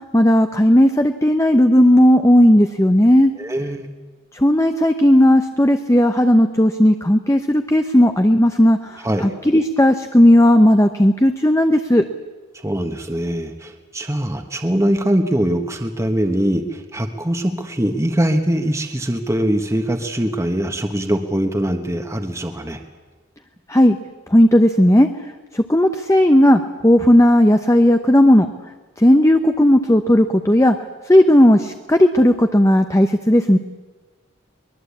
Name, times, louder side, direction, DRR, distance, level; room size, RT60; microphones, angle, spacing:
voice 1, 0.1-3.3 4.3-8.8 9.5-12.0 23.7-24.0 24.3-25.1 25.5-28.5 29.0-30.7 31.1-33.6, left 1 dB, 15° left, 7 dB, 0.8 m, -14 dB
voice 2, 3.4-3.9 9.0-9.3 12.5-22.8, right 1 dB, 15° right, 5 dB, 1.4 m, -22 dB
23.5 x 21.0 x 8.5 m, 1.3 s
head